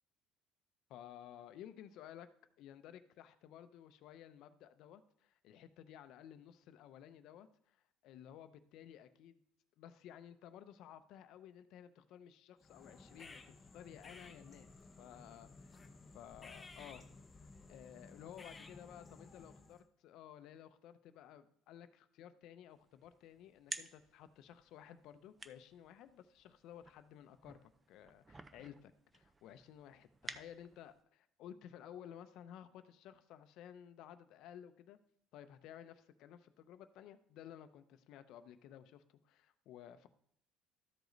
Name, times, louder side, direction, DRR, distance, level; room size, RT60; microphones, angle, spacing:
voice 1, 0.9-2.3 2.6-9.4 9.8-14.7 15.0-15.9 16.1-17.0 17.7-27.6 27.9-35.0 35.3-40.1, left 10 dB, 65° left, 11 dB, 0.6 m, -55 dB
sound 1, 12.6-19.9, left 3 dB, 20° left, 0.7 m, -56 dB
sound 2, 22.7-31.0, right 3 dB, 20° right, 0.5 m, -53 dB
13.0 x 5.1 x 3.9 m, 0.68 s
cardioid pair, 115°, 0 cm